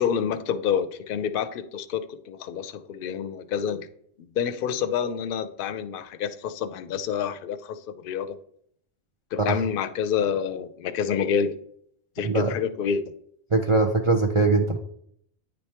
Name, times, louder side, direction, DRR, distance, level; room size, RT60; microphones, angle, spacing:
voice 1, 0.0-3.9 4.2-8.4 9.3-11.5 12.2-13.0, left 7 dB, 60° left, 11 dB, 0.6 m, -28 dB
voice 2, 12.2-12.5 13.5-14.8, right 3 dB, 50° right, 4 dB, 0.3 m, -21 dB
9.3 x 3.3 x 4.3 m, 0.68 s
omnidirectional pair, 1.3 m